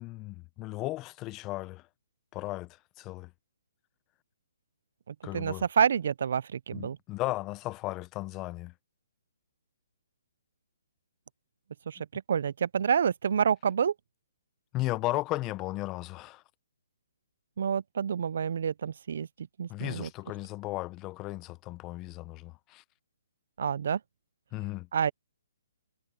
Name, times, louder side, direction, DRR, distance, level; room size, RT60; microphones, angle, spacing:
voice 1, 0.0-1.8 2.3-3.3 5.2-5.7 6.7-8.7 14.7-16.4 19.7-22.8 24.5-24.9, left 19 dB, 20° left, 0.9 m, -35 dB
voice 2, 5.1-7.0 11.9-13.9 17.6-20.1 23.6-24.0 24.9-25.1, right 7 dB, 60° right, 0.5 m, -28 dB
hypercardioid pair, 150°, 0 cm